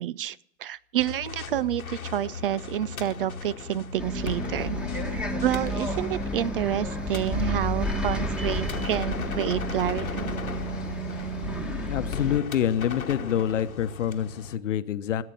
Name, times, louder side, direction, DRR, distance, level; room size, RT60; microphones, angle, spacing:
voice 1, 0.0-4.8 5.1-10.4, right 11 dB, 45° right, 22 dB, 0.4 m, -29 dB
sound 1, 1.0-14.6, left 6 dB, 85° left, 1.3 m, -38 dB
Bus, 4.0-12.4, equal, ahead, 1.6 m, -31 dB
voice 2, 11.9-15.2, left 10 dB, 60° left, 13 dB, 1.0 m, -27 dB
18.5 x 8.4 x 6.4 m, 0.76 s
hypercardioid pair, 115°, 41 cm